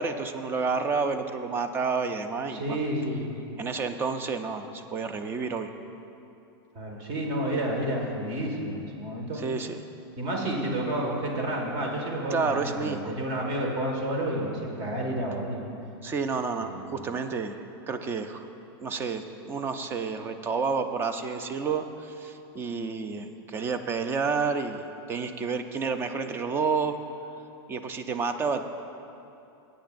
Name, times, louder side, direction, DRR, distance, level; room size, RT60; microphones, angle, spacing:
voice 1, 0.0-2.8 3.6-5.7 9.3-9.8 12.3-13.1 16.0-17.6 17.9-18.5 18.8-27.0 27.7-28.7, right 5 dB, 15° right, 8 dB, 0.4 m, -30 dB
voice 2, 2.5-3.3 6.8-9.4 10.2-15.7 16.6-16.8, right 1 dB, 40° right, 0 dB, 1.7 m, -30 dB
17.0 x 8.8 x 2.6 m, 2.7 s
supercardioid pair, 150°, 14 cm